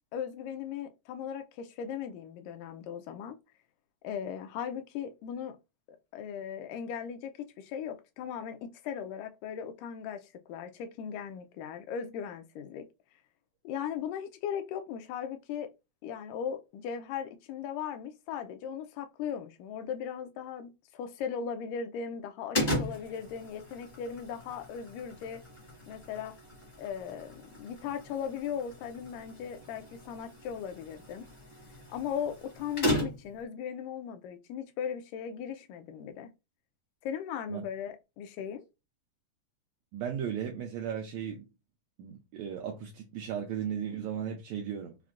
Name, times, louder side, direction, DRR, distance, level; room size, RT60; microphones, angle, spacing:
voice 1, 0.1-3.4 4.0-5.6 6.1-12.9 13.6-15.7 16.0-25.4 25.9-26.4 26.8-31.3 31.9-36.3 37.0-38.7, left 8 dB, 85° left, 2.2 m, -38 dB
sound 1, 22.5-33.4, equal, 50° left, 0.7 m, -37 dB
voice 2, 39.9-41.5 42.0-45.0, right 8 dB, 85° right, 1.6 m, -36 dB
5.8 x 2.1 x 2.4 m
omnidirectional pair, 3.7 m